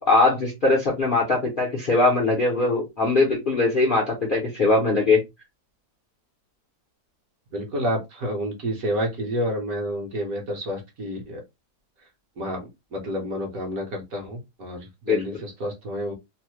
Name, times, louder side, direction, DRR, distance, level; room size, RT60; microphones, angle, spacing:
voice 1, 0.0-5.2 15.1-15.2, left 3 dB, 50° left, 0.6 m, -21 dB
voice 2, 7.5-11.4 12.4-16.1, equal, 60° right, 1.3 m, -29 dB
3.1 x 2.1 x 3.0 m
omnidirectional pair, 1.8 m